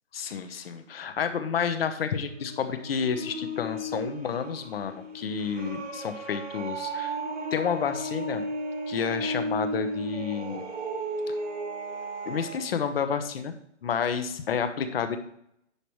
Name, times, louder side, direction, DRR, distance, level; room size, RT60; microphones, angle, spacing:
voice 1, 0.1-7.1 7.5-8.4 8.9-10.6 12.3-13.5 13.8-15.2, left 7 dB, 55° left, 9 dB, 1.0 m, -30 dB
sound 1, 2.2-12.7, right 1 dB, 85° right, 2.0 m, -34 dB
9.9 x 5.9 x 3.1 m, 0.72 s
hypercardioid pair, 150°, 36 cm